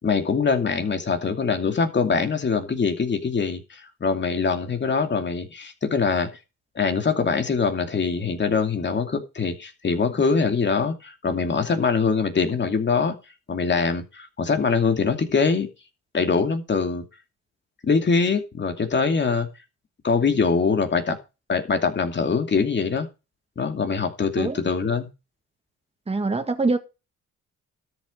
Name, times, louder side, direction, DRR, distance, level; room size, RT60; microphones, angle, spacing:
voice 1, 0.0-6.3 6.8-13.1 13.5-15.7 16.1-17.0 17.8-19.5 20.0-21.2 21.5-23.1 23.6-25.1, left 5 dB, 35° left, 2.6 m, -23 dB
voice 2, 26.1-26.8, right 3 dB, 20° right, 1.8 m, -24 dB
13.0 x 7.3 x 5.1 m
cardioid pair, 90°, 30 cm